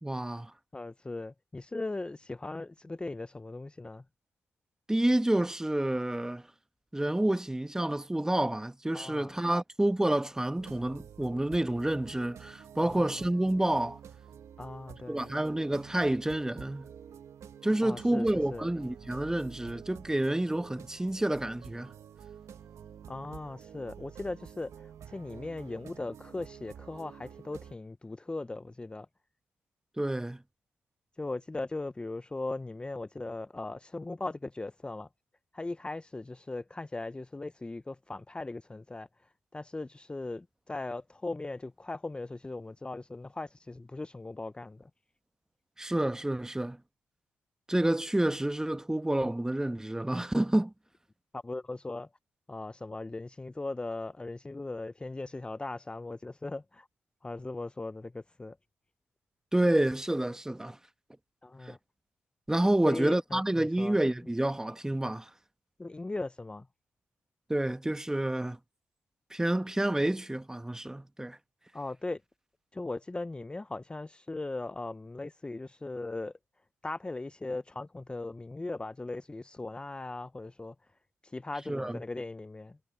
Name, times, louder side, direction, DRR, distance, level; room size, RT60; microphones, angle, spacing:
voice 1, 0.0-0.5 4.9-6.4 6.9-14.0 15.1-16.9 17.6-21.9 30.0-30.4 45.8-46.8 47.7-50.7 59.5-60.8 61.6-61.8 62.5-65.3 67.5-68.6 69.3-71.4 81.7-82.0, right 1 dB, 10° right, 1.1 m, -29 dB
voice 2, 0.7-4.0 8.9-9.3 12.8-13.2 14.6-15.4 17.8-18.7 23.1-29.1 31.2-35.1 35.5-39.1 39.5-44.9 51.3-52.1 52.5-56.9 57.2-58.6 61.4-61.8 62.9-64.0 65.8-66.7 71.7-72.2 72.7-76.3 76.8-80.7 81.2-82.8, left 2 dB, 20° left, 0.5 m, -39 dB
sound 1, 10.6-27.8, right 8 dB, 75° right, 1.2 m, -49 dB
cardioid pair, 65°, 5 cm